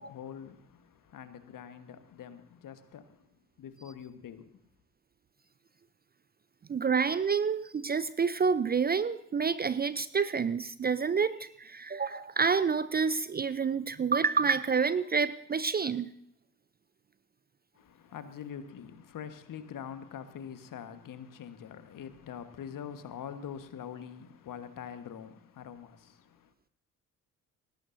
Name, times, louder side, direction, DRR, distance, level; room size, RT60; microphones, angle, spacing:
voice 1, 0.0-4.5 17.7-26.5, left 8 dB, 50° left, 1.4 m, -44 dB
voice 2, 6.7-16.1, right 5 dB, 25° right, 0.5 m, -28 dB
20.0 x 17.5 x 2.7 m
figure-of-eight pair, 45°, 41 cm